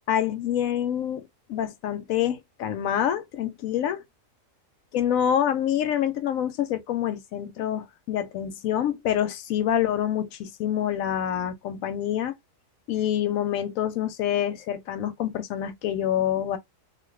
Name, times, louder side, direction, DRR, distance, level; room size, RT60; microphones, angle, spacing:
voice 1, 0.1-4.0 4.9-12.3 12.9-16.6, left 10 dB, 90° left, 1.0 m, -26 dB
2.8 x 2.4 x 3.2 m
omnidirectional pair, 1.4 m